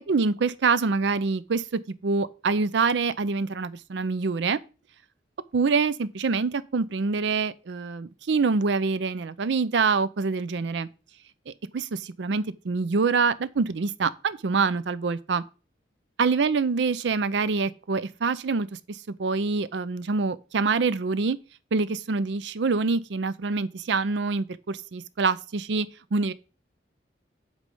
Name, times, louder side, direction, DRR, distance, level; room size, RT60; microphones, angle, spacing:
voice 1, 0.1-4.6 5.5-10.9 11.5-15.4 16.2-21.4 21.7-26.3, right 4 dB, 70° right, 0.5 m, -25 dB
8.2 x 3.3 x 5.4 m
head